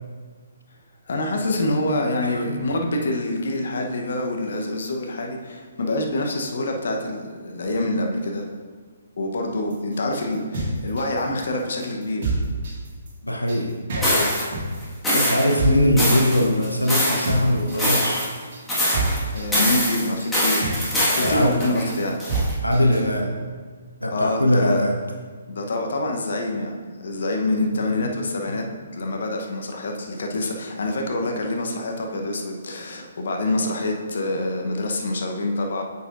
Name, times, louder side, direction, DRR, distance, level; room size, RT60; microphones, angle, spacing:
voice 1, 1.1-8.5 9.2-12.4 19.3-20.7 21.1-22.2 24.1-24.9 25.5-28.7 28.9-35.8, left 1 dB, 60° left, 2 dB, 0.9 m, -26 dB
voice 2, 2.2-2.6 13.2-14.3 15.1-18.2 21.2-21.5 22.6-23.4 24.0-25.0, equal, 90° left, 2 dB, 0.8 m, -21 dB
sound 1, 9.7-23.1, right 2 dB, 45° right, 1.9 m, -28 dB
sound 2, 14.0-14.4 15.0-15.5 16.0-17.3 17.7-18.4 18.7-19.2 19.5-22.5, left 1 dB, 5° left, 1.7 m, -23 dB
8.9 x 6.8 x 2.6 m, 1.5 s
figure-of-eight pair, 130°, 0 cm